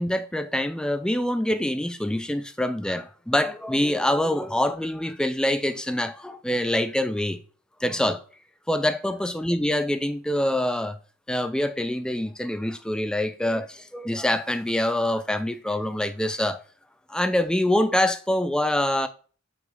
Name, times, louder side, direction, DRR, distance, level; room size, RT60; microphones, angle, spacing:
voice 1, 0.0-7.4 7.8-8.2 8.7-11.0 11.3-16.6 17.1-19.1, left 1 dB, 5° left, 0.3 m, -25 dB
6.2 x 3.1 x 5.2 m
head